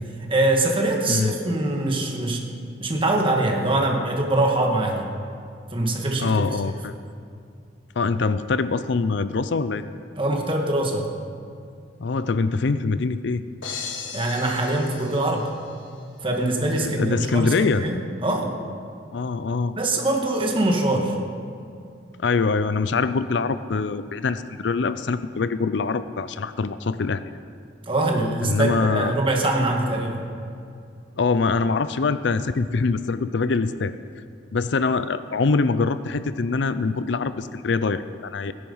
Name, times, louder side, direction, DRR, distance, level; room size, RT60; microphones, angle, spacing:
voice 1, 0.3-2.4 2.8-5.1 5.7-6.3 10.2-11.1 14.1-15.5 16.2-18.5 19.8-21.2 27.9-30.3, right 2 dB, 30° right, 1 dB, 1.8 m, -23 dB
voice 2, 6.2-6.9 8.0-9.8 12.0-13.4 16.8-17.8 19.1-19.7 22.2-27.2 28.4-29.1 31.2-33.9 34.5-38.5, left 4 dB, 65° left, 13 dB, 0.5 m, -24 dB
sound 1, 13.6-15.9, left 6 dB, 80° left, 1.6 m, -37 dB
17.0 x 10.5 x 5.6 m, 2.4 s
head